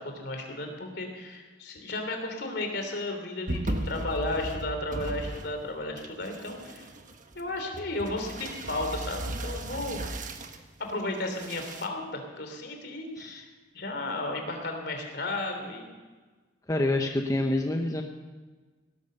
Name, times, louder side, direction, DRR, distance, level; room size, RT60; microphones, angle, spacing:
voice 1, 0.0-6.9 7.3-10.0 10.8-13.5 13.7-16.0, left 2 dB, 60° left, 4 dB, 3.1 m, -34 dB
sound 1, 3.5-5.7 6.0-10.6 11.2-11.9, right 1 dB, 45° right, 1.2 m, -36 dB
voice 2, 16.7-18.0, left 1 dB, 20° left, 3 dB, 0.9 m, -27 dB
17.5 x 12.0 x 6.7 m, 1.3 s
head